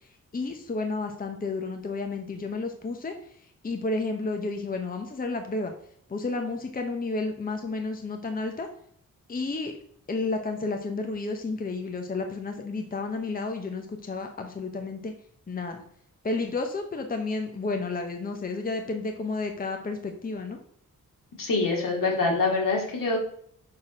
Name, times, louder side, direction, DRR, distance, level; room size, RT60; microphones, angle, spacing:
voice 1, 0.3-3.1 3.6-5.7 6.1-8.7 9.3-9.7 10.1-15.1 15.5-15.8 16.2-20.6, left 3 dB, 25° left, 5 dB, 0.8 m, -31 dB
voice 2, 21.4-23.2, left 3 dB, 75° left, 0 dB, 2.2 m, -25 dB
5.8 x 4.7 x 6.0 m, 0.64 s
wide cardioid pair, 130°, 34 cm